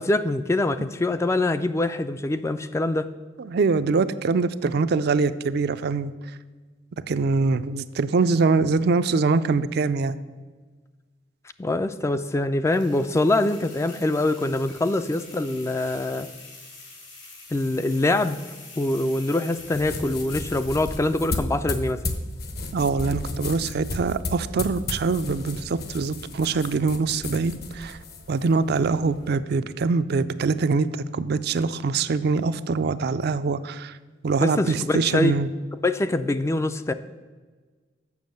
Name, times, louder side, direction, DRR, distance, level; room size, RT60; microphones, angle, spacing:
voice 1, 0.0-3.1 11.6-16.3 17.5-18.4 18.8-22.0 34.4-35.3 35.8-36.9, left 2 dB, 15° left, 11 dB, 0.3 m, -24 dB
voice 2, 3.4-6.1 7.1-10.2 22.7-28.0 28.3-30.9 31.1-33.9 34.2-35.5, right 4 dB, 60° right, 12 dB, 0.4 m, -23 dB
sound 1, 12.6-21.4, left 3 dB, 80° left, 3.3 m, -45 dB
sound 2, 19.6-29.3, left 2 dB, 60° left, 1.0 m, -34 dB
7.3 x 6.0 x 7.6 m, 1.4 s
head